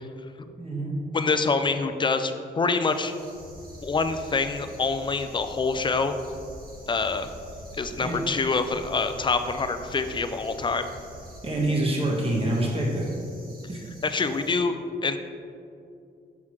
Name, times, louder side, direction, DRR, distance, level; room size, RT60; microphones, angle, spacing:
voice 1, 0.6-0.9 8.0-8.2 11.4-13.1 13.7-13.8, right 1 dB, 30° right, -3 dB, 1.4 m, -26 dB
voice 2, 1.1-3.1 3.8-6.1 6.9-7.3 7.8-10.9 14.0-14.8 15.0-15.2, left 4 dB, 25° left, 9 dB, 0.4 m, -26 dB
sound 1, 2.8-14.6, right 1 dB, 50° right, 1.5 m, -51 dB
sound 2, 3.3-11.4, equal, 85° left, 0.9 m, -45 dB
6.1 x 5.6 x 3.1 m, 2.5 s
cardioid pair, 80°, 19 cm